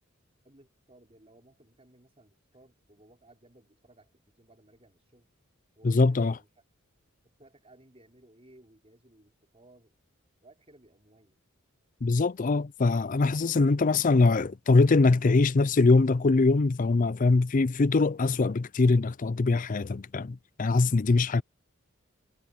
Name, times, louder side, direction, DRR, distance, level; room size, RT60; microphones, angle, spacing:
voice 1, 0.4-5.3 5.8-6.5 7.4-9.9 10.4-11.4, right 1 dB, 30° right, 5.3 m, -59 dB
voice 2, 5.8-6.4 12.0-21.4, left 3 dB, 40° left, 0.5 m, -23 dB
head